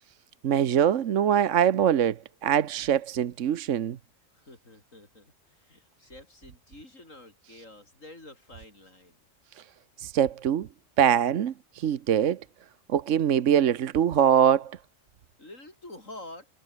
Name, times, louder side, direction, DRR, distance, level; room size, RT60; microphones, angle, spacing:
voice 1, 0.4-4.0 10.0-10.7 11.0-12.4 12.9-14.8, right 9 dB, 75° right, 1.2 m, -23 dB
voice 2, 4.3-9.2 15.4-16.5, left 2 dB, 85° left, 6.8 m, -48 dB
omnidirectional pair, 1.3 m